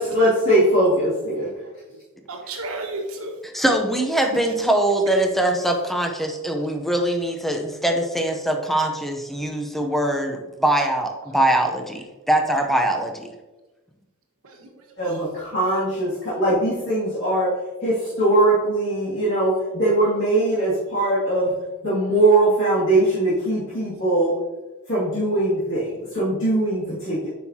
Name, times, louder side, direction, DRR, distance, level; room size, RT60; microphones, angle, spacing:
voice 1, 0.0-1.5 15.0-17.5 17.8-21.5 21.8-24.3 24.9-27.3, right 1 dB, 60° left, -9 dB, 2.4 m, -21 dB
voice 2, 1.6-2.0 2.3-3.4 14.4-15.2, right 2 dB, 70° right, 1 dB, 1.4 m, -34 dB
voice 3, 3.5-13.3, right 1 dB, ahead, 4 dB, 0.7 m, -22 dB
9.1 x 5.6 x 2.8 m, 1.1 s
head